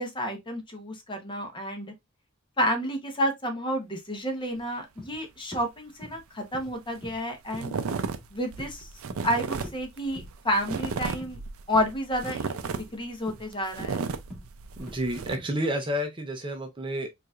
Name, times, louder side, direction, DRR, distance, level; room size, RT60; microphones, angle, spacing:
voice 1, 0.0-1.9 2.6-7.8 8.3-8.9 9.2-11.4 11.7-14.1, equal, 25° left, 0.9 m, -30 dB
sound 1, 4.5-4.6 5.0-5.2 5.5-5.7 6.0-6.2 6.5-6.7 7.0-7.2 7.5-7.7 8.0-8.3 8.6-8.7 9.1-9.3 9.6-9.8 10.2-10.3 10.7-10.8 11.2-11.4 11.7-11.9 12.2-12.4 12.8-13.0 13.3-13.4 13.8-14.0 14.3-14.5 14.9-15.0 15.4-15.5, equal, ahead, 1.9 m, -44 dB
sound 2, 6.6-6.7 6.9-7.2 7.5-15.4, right 5 dB, 75° right, 0.5 m, -34 dB
voice 2, 14.8-17.1, equal, 25° right, 0.6 m, -30 dB
4.5 x 2.5 x 2.4 m
head